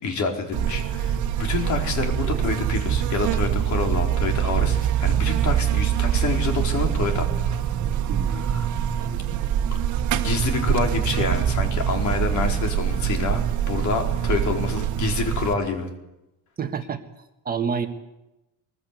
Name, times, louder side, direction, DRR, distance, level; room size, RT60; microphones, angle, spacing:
voice 1, 0.0-7.7 8.3-8.7 10.1-15.9, left 4 dB, 55° left, 3 dB, 4.3 m, -27 dB
Buzz, 0.5-15.5, right 9 dB, 55° right, 1.7 m, -24 dB
voice 2, 8.1-8.4 9.0-9.2 9.7-9.8 16.6-17.0 17.4-17.9, right 6 dB, 25° right, 6 dB, 1.5 m, -29 dB
23.0 x 21.0 x 8.3 m, 0.96 s
cardioid pair, 160°, 34 cm